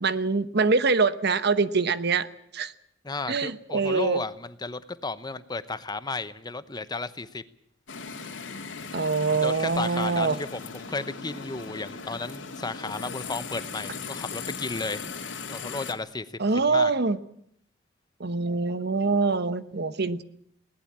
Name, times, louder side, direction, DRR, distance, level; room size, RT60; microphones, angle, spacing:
voice 1, 0.0-2.3 2.5-2.7 3.3-4.2 8.9-10.4 16.4-17.2 18.2-20.2, right 4 dB, 60° right, 13 dB, 1.1 m, -24 dB
voice 2, 3.0-7.4 9.3-15.1 15.5-16.3 16.7-16.9, left 3 dB, 20° left, 14 dB, 0.9 m, -34 dB
sound 1, 7.9-15.9, left 5 dB, 75° left, 2.6 m, -38 dB
20.5 x 18.5 x 8.6 m, 0.68 s
head